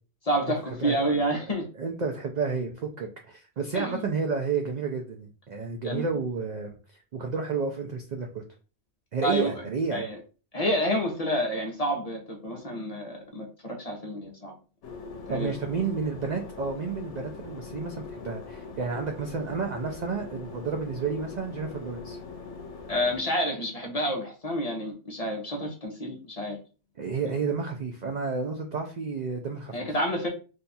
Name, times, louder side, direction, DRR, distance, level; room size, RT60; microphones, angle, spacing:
voice 1, 0.3-1.7 3.7-4.1 5.8-6.0 9.2-9.5 9.9-10.2 10.5-14.5 15.3-15.5 22.9-26.6 29.7-30.3, equal, 40° left, 1 dB, 0.7 m, -29 dB
voice 2, 0.8-1.1 1.8-6.7 7.1-8.4 9.1-10.1 15.3-22.2 27.0-29.8, right 4 dB, 60° right, 3 dB, 0.4 m, -31 dB
sound 1, 14.8-23.2, left 4 dB, 75° left, 0.9 m, -42 dB
2.7 x 2.3 x 3.9 m, 0.35 s
omnidirectional pair, 1.2 m